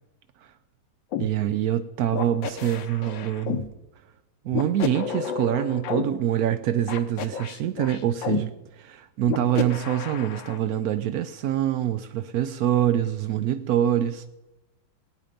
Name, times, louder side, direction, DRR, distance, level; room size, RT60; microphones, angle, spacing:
sound 1, 1.1-1.3 2.1-3.7 4.5-6.0 6.9-8.4 9.3-10.6, left 8 dB, 75° left, 1.6 m, -30 dB
voice 1, 1.2-3.6 4.4-8.5 8.8-14.2, right 11 dB, 75° right, 0.8 m, -25 dB
19.5 x 8.9 x 5.1 m
omnidirectional pair, 2.1 m